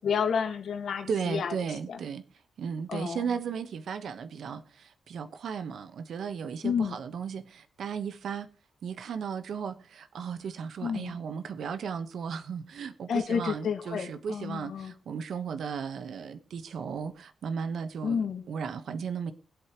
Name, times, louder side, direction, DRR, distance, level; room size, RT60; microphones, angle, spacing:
voice 1, 0.0-1.5 1.9-2.0 2.9-3.2 6.6-7.0 10.8-11.1 13.1-14.9 18.0-18.4, left 6 dB, 55° left, 1.6 m, -30 dB
voice 2, 1.1-2.2 2.6-8.5 8.8-19.3, right 6 dB, 60° right, 1.1 m, -35 dB
21.0 x 8.3 x 3.0 m
wide cardioid pair, 180°, 0 cm